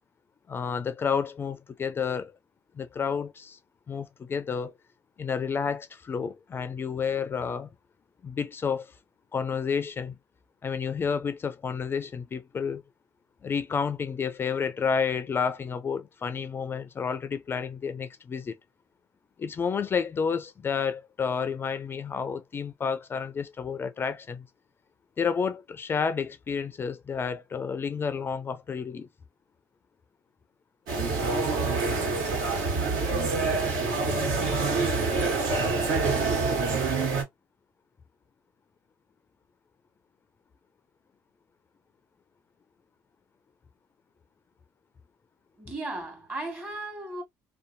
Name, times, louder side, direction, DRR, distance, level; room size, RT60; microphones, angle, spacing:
voice 1, 0.5-2.3 2.8-3.6 3.9-4.7 5.2-7.7 8.2-8.9 9.3-10.2 10.6-12.8 13.4-18.6 19.4-24.4 25.2-29.1, left 6 dB, 30° left, 0.3 m, -30 dB
sound 1, 30.9-37.2, right 3 dB, 80° right, 1.5 m, -26 dB
voice 2, 45.6-47.2, right 2 dB, 30° right, 1.3 m, -36 dB
2.7 x 2.1 x 2.5 m
cardioid pair, 95°, 7 cm